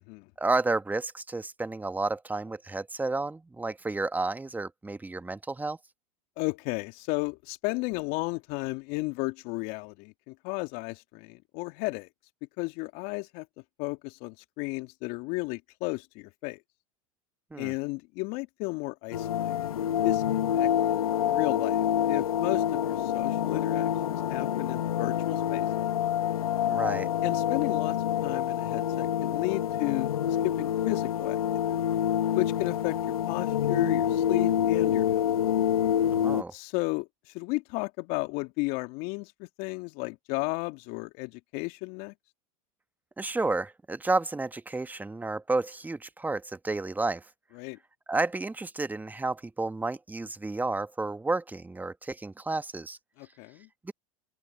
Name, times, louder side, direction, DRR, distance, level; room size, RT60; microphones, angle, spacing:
voice 1, 0.4-5.8 17.5-17.7 26.7-27.1 36.1-36.5 43.2-47.2 48.1-53.0 53.8-53.9, right 3 dB, 10° right, 1.3 m, -31 dB
voice 2, 6.4-12.1 12.6-13.5 13.8-16.6 17.6-25.9 27.2-28.0 28.2-30.1 30.4-31.4 32.3-35.2 36.5-42.1 47.5-47.8 53.2-53.7, left 26 dB, 55° left, 2.6 m, -34 dB
sound 1, 19.1-36.4, left 10 dB, 80° left, 1.3 m, -27 dB
open air
hypercardioid pair, 90°, 18 cm